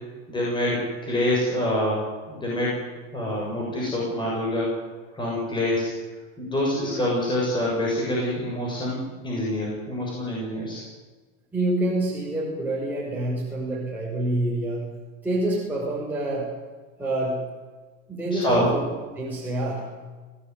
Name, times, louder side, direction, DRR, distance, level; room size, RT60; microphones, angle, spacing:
voice 1, 0.3-2.8 3.1-4.8 5.1-5.9 6.4-10.8 18.3-18.7, left 1 dB, 10° left, -4 dB, 7.2 m, -26 dB
voice 2, 11.5-14.9 15.2-16.5 17.0-17.4 18.1-18.9 19.2-19.9, right 1 dB, 5° right, -6 dB, 6.1 m, -27 dB
28.0 x 18.0 x 9.7 m, 1.4 s
supercardioid pair, 170°, 39 cm